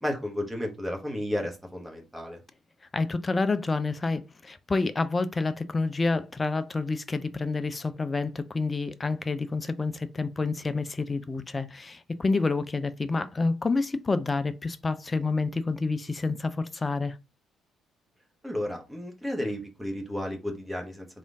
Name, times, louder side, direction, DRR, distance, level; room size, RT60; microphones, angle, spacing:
voice 1, 0.0-2.4 18.4-21.1, left 1 dB, 5° right, 1.2 m, -32 dB
voice 2, 2.9-17.2, left 3 dB, 25° left, 0.4 m, -28 dB
3.5 x 2.6 x 3.6 m
figure-of-eight pair, 45°, 0 cm